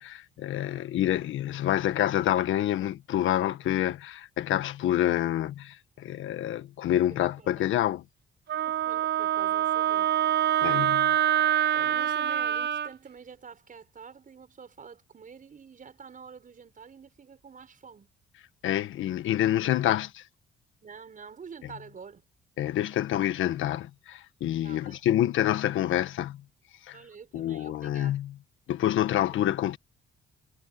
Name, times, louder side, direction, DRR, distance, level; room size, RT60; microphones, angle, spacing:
voice 1, 0.0-8.0 10.6-11.1 18.6-20.2 22.6-26.4 26.9-27.0 27.3-28.3 28.7-29.8, left 12 dB, 80° left, 1.5 m, -27 dB
voice 2, 7.1-7.7 8.6-10.4 11.7-18.1 20.8-22.2 24.6-25.0 26.9-28.2 29.2-29.6, right 6 dB, 40° right, 6.3 m, -48 dB
Wind instrument woodwind instrument, 8.5-12.9, right 11 dB, 60° right, 0.8 m, -25 dB
cardioid pair, 90°, 20 cm